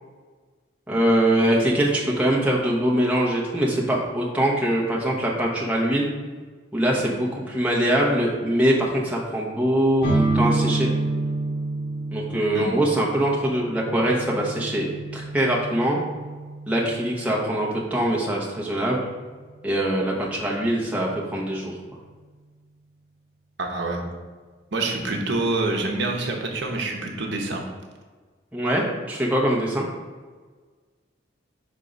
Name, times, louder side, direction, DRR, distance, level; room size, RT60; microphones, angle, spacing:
voice 1, 0.9-6.1 6.7-10.1 10.3-10.9 12.1-16.0 16.7-19.1 19.6-21.7 28.5-29.8, right 1 dB, 5° right, -4 dB, 0.9 m, -23 dB
sound 1, 10.0-17.6, right 2 dB, 60° left, 1.7 m, -28 dB
voice 2, 23.6-24.0 24.7-27.6, right 2 dB, 65° right, 2 dB, 0.8 m, -26 dB
5.1 x 3.7 x 5.2 m, 1.5 s
head